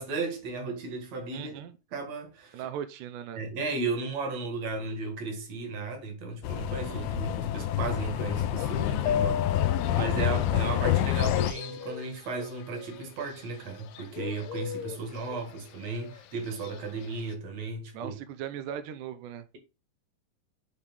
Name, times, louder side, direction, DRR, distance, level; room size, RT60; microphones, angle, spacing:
voice 1, 0.0-1.6 1.9-2.7 3.4-18.1, right 3 dB, 50° right, 2.5 m, -35 dB
voice 2, 1.3-1.7 2.5-3.4 6.8-7.3 9.9-10.1 17.9-19.5, right 9 dB, 90° right, 1.8 m, -39 dB
sound 1, 6.4-11.5, left 11 dB, 90° left, 2.6 m, -27 dB
Fowl, 8.6-17.3, left 9 dB, 75° left, 2.2 m, -45 dB
8.3 x 3.4 x 5.3 m
omnidirectional pair, 4.4 m